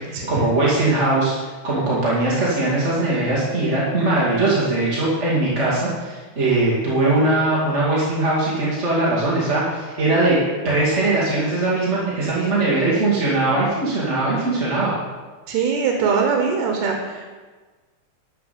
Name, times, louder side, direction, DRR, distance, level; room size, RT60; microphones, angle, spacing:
voice 1, 0.0-10.4 10.6-14.9, right 2 dB, 25° right, -7 dB, 2.1 m, -20 dB
voice 2, 15.5-17.3, right 5 dB, 75° right, 3 dB, 2.7 m, -22 dB
12.5 x 5.9 x 7.6 m, 1.4 s
omnidirectional pair, 3.8 m